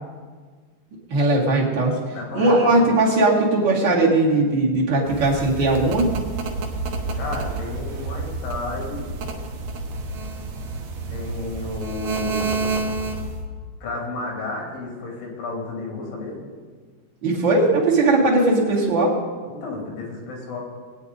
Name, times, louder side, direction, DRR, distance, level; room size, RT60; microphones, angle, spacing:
voice 1, 1.1-2.0 2.3-6.1 17.2-19.2, right 2 dB, 40° right, -4 dB, 1.7 m, -19 dB
voice 2, 2.1-2.9 7.1-9.1 11.1-12.8 13.8-16.4 19.5-20.6, left 3 dB, 85° left, -1 dB, 5.5 m, -32 dB
sound 1, 5.1-13.4, right 3 dB, 70° right, 1.9 m, -29 dB
21.5 x 9.3 x 4.1 m, 1.5 s
omnidirectional pair, 5.2 m